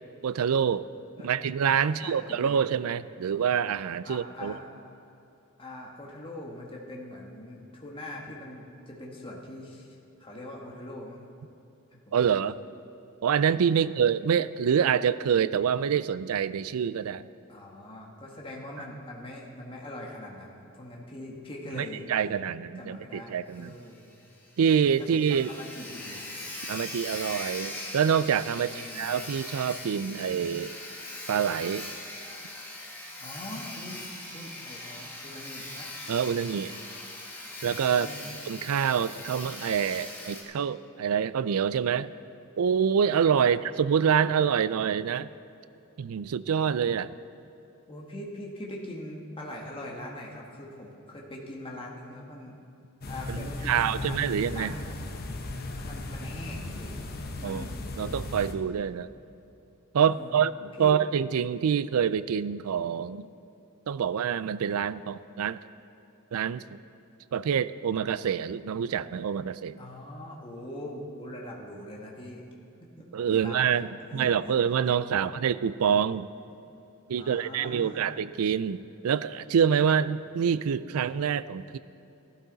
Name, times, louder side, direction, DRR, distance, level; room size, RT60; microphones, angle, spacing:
voice 1, 0.2-0.9 1.2-4.5 12.1-12.6 13.2-17.2 21.8-23.8 24.6-25.5 26.7-30.7 31.3-31.9 36.1-36.8 37.6-38.1 38.4-42.1 42.6-45.3 46.0-47.2 53.3-54.7 57.4-57.6 58.0-59.1 59.9-63.3 63.9-65.6 66.3-66.8 67.3-69.8 73.1-76.3 77.1-81.8, right 7 dB, 80° right, 16 dB, 0.4 m, -26 dB
voice 2, 1.8-2.7 4.0-4.7 5.6-11.3 11.9-12.4 13.7-13.9 17.5-24.1 25.1-26.3 28.6-29.1 33.2-34.0 34.3-35.9 37.9-38.3 43.4-43.6 47.9-52.6 53.1-54.2 54.5-54.9 55.8-56.9 57.4-57.7 60.0-60.4 60.8-60.9 69.8-72.4 73.0-73.6 74.0-74.5 74.8-75.3 77.1-78.1, left 1 dB, 25° left, -2 dB, 1.5 m, -42 dB
Sawing, 23.5-23.6 23.9-24.0 24.4-24.5 24.7-40.4, left 1 dB, 10° left, 1.6 m, -40 dB
sound 1, 53.0-58.5, left 2 dB, 45° left, 0.9 m, -36 dB
15.5 x 12.5 x 4.0 m, 2.9 s
head